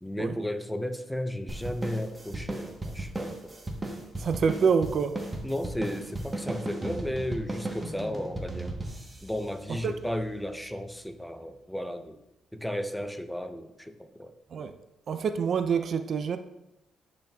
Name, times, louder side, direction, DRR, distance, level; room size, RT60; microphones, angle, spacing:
voice 1, 0.0-3.5 5.4-8.8 9.2-12.2 12.5-14.3, left 1 dB, ahead, 8 dB, 0.5 m, -34 dB
sound 1, 1.5-10.3, right 2 dB, 20° right, 1.0 m, -36 dB
voice 2, 4.2-5.2 9.7-9.9 14.5-14.7 15.1-16.4, right 6 dB, 55° right, 9 dB, 0.4 m, -26 dB
10.5 x 4.0 x 2.3 m, 0.90 s
cardioid pair, 90°, 0 cm